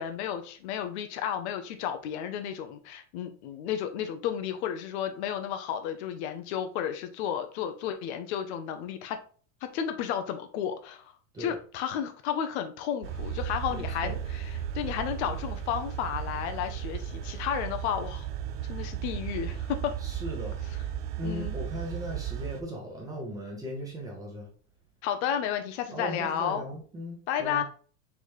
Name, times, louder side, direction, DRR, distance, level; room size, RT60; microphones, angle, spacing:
voice 1, 0.0-9.2 9.6-11.1 11.4-18.3 18.7-19.9 21.2-21.6 25.0-26.6 27.3-27.6, left 9 dB, 55° left, 0.7 m, -32 dB
sound 1, 13.0-22.6, right 9 dB, 55° right, 0.5 m, -35 dB
voice 2, 13.7-14.2 20.0-20.6 21.2-24.5 25.9-27.6, equal, 10° right, 1.0 m, -38 dB
4.1 x 3.4 x 3.1 m
supercardioid pair, 160°, 39 cm